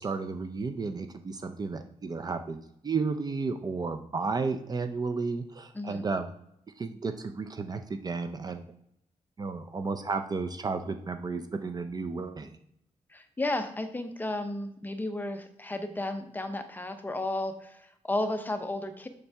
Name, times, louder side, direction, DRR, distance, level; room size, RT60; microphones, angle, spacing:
voice 1, 0.0-6.3 6.8-8.6 9.4-12.6, right 4 dB, 30° right, 8 dB, 0.5 m, -33 dB
voice 2, 13.1-19.1, left 2 dB, 15° left, 7 dB, 0.7 m, -33 dB
7.0 x 6.6 x 3.4 m, 0.75 s
wide cardioid pair, 145°, 13 cm